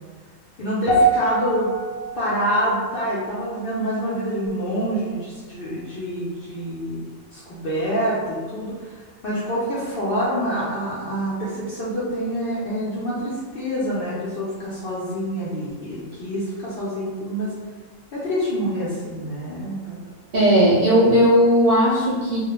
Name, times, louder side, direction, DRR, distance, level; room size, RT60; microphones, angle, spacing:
voice 1, 0.6-1.7 2.2-7.0 7.3-17.5 18.1-20.0, equal, 60° left, -8 dB, 0.6 m, -26 dB
sound 1, 0.9-5.3 5.5-5.9 6.6-6.7, right 2 dB, 90° left, 1.0 m, -27 dB
voice 2, 20.3-22.4, equal, 60° right, -7 dB, 0.6 m, -16 dB
2.2 x 2.1 x 2.9 m, 1.5 s
omnidirectional pair, 1.4 m